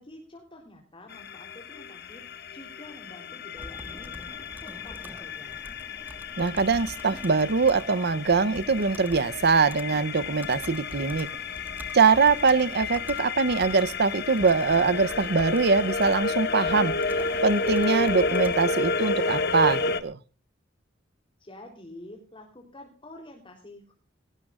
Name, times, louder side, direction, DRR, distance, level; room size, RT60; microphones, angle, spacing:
voice 1, 0.0-5.6 21.4-23.9, left 1 dB, 25° left, 3.5 m, -48 dB
sound 1, 1.1-20.0, left 3 dB, 55° left, 1.9 m, -31 dB
Computer keyboard, 3.6-18.6, right 1 dB, 10° right, 1.5 m, -46 dB
voice 2, 6.4-11.3 11.9-17.0 17.4-20.2, right 4 dB, 55° right, 0.8 m, -23 dB
21.5 x 18.0 x 2.4 m
head